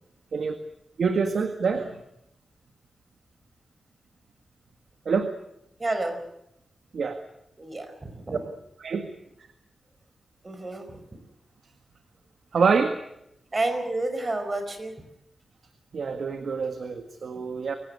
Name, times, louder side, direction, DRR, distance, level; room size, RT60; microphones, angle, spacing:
voice 1, 1.0-2.0 5.1-5.3 6.9-7.2 8.3-8.4 8.8-9.1 12.5-13.0 15.9-17.7, right 5 dB, 65° right, 7 dB, 1.7 m, -26 dB
voice 2, 5.8-6.2 7.6-8.4 10.4-10.9 13.5-14.9, right 2 dB, 30° right, 7 dB, 4.9 m, -29 dB
24.0 x 16.5 x 9.8 m, 0.81 s
wide cardioid pair, 115°, 0 cm